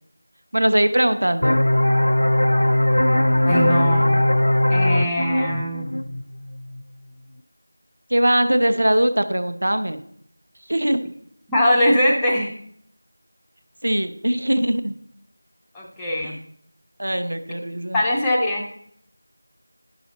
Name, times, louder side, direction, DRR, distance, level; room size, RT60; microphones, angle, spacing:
voice 1, 0.5-1.6 8.1-10.0 10.7-11.0 13.8-14.9 16.2-16.3 17.0-18.0, right 1 dB, 60° right, 10 dB, 0.8 m, -21 dB
sound 1, 1.4-6.8, left 1 dB, 80° left, 0.5 m, -19 dB
voice 2, 3.5-4.1 4.7-5.9 11.5-12.5 15.7-16.4 17.9-18.7, left 1 dB, 5° left, -5 dB, 0.3 m, -21 dB
10.5 x 6.0 x 4.1 m, 0.66 s
figure-of-eight pair, 180°, 0 cm